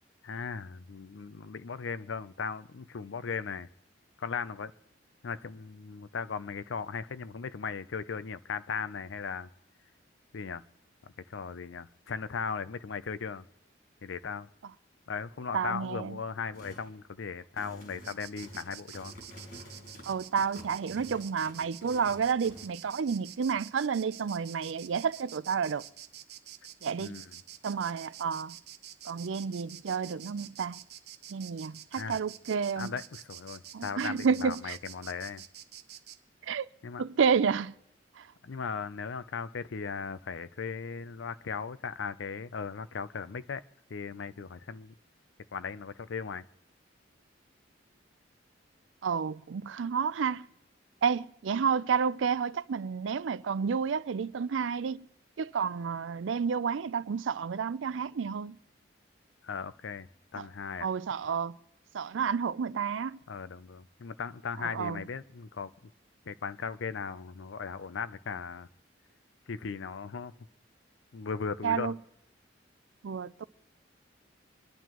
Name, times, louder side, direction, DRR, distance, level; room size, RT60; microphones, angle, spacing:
voice 1, 0.2-3.7 4.2-4.7 5.2-9.5 10.3-10.6 11.0-13.4 14.0-14.5 15.1-19.1 27.0-27.4 31.9-32.2 32.8-35.4 36.8-37.0 38.4-43.6 43.9-44.9 45.5-46.4 59.4-60.9 63.3-65.7 66.3-68.7 69.5-70.3 71.1-71.9, left 5 dB, 80° left, 0.5 m, -37 dB
voice 2, 15.5-16.2 20.1-25.8 26.8-27.2 27.6-28.6 29.1-30.8 31.3-32.9 33.7-34.8 36.4-36.7 37.0-37.7 38.2-38.3 49.0-50.5 51.0-55.1 55.4-58.6 60.4-60.5 60.8-61.6 61.9-63.2 64.6-65.0 71.6-72.0 73.0-73.4, right 6 dB, 85° right, 0.4 m, -30 dB
sound 1, 16.5-16.9 17.4-22.7, left 1 dB, 55° left, 5.2 m, -49 dB
Insect, 18.0-36.2, right 11 dB, 55° right, 0.7 m, -48 dB
26.5 x 11.0 x 3.0 m
head